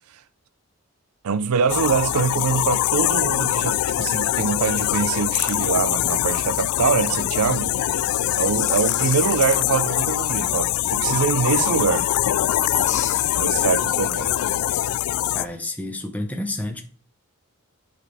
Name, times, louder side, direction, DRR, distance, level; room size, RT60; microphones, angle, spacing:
voice 1, 1.2-7.7 8.4-12.1 13.3-14.4, right 6 dB, 85° right, 0.5 m, -24 dB
sound 1, 1.7-15.5, left 13 dB, 80° left, 0.3 m, -23 dB
sound 2, 4.3-15.6, left 7 dB, 35° left, 1.5 m, -39 dB
voice 2, 15.3-16.8, left 1 dB, 5° left, 1.0 m, -30 dB
8.4 x 6.2 x 3.4 m
head